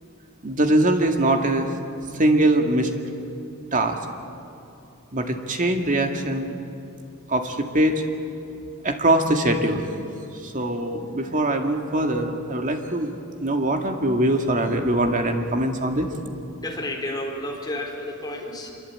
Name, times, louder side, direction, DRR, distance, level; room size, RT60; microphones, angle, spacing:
voice 1, 0.4-1.7 2.2-2.9 3.7-4.0 5.1-6.6 7.3-8.0 8.8-9.9 10.4-13.1 13.4-16.1, right 1 dB, 35° right, 4 dB, 2.2 m, -22 dB
voice 2, 16.6-18.7, left 1 dB, 20° left, 0 dB, 3.9 m, -31 dB
26.0 x 23.0 x 8.8 m, 2.6 s
head